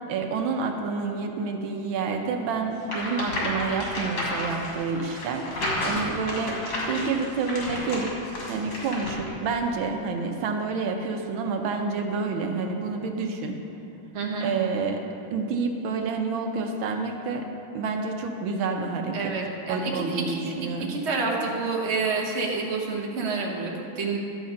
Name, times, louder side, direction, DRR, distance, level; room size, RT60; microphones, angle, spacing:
voice 1, 0.1-8.2 8.5-13.6 14.4-17.5 17.7-19.4 19.7-21.0, right 4 dB, 80° right, 4 dB, 1.5 m, -29 dB
sound 1, 2.8-9.3, left 1 dB, 75° left, 3.0 m, -31 dB
voice 2, 14.1-14.5 19.1-24.2, right 4 dB, 40° right, -1 dB, 1.3 m, -29 dB
12.0 x 7.6 x 5.2 m, 2.8 s
omnidirectional pair, 2.2 m